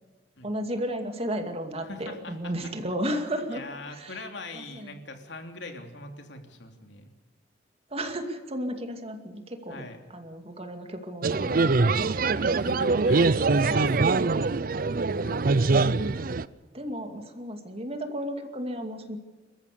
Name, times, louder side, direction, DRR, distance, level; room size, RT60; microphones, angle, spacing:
voice 1, 0.4-3.6 3.9-4.3 4.5-5.0 7.9-9.8 10.1-12.4 13.4-13.8 14.3-14.4 15.1-16.3 16.7-19.2, equal, 35° right, 6 dB, 2.4 m, -34 dB
voice 2, 1.9-2.3 3.1-3.2 3.5-7.1 9.7-10.0 12.5-14.4 15.2-15.5, left 2 dB, 85° left, 4 dB, 3.1 m, -41 dB
sound 1, 11.2-16.4, right 3 dB, 50° right, 0.6 m, -23 dB
28.0 x 14.5 x 6.9 m, 1.4 s
head